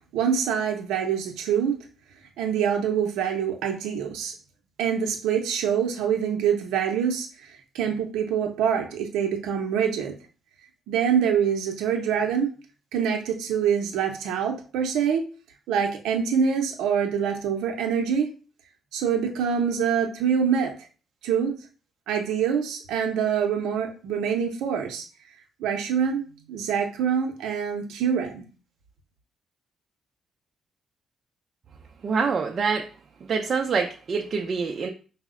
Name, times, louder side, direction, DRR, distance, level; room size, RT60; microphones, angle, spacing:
voice 1, 0.1-1.8 2.4-4.3 4.8-10.2 10.9-12.5 12.9-15.3 15.7-18.3 18.9-20.7 21.2-21.6 22.1-25.0 25.6-26.2 26.5-28.4, right 7 dB, 90° right, 0.6 m, -25 dB
voice 2, 32.0-32.9 33.2-34.9, right 5 dB, 50° right, 0.4 m, -26 dB
4.8 x 2.0 x 3.6 m
cardioid pair, 90°, 0 cm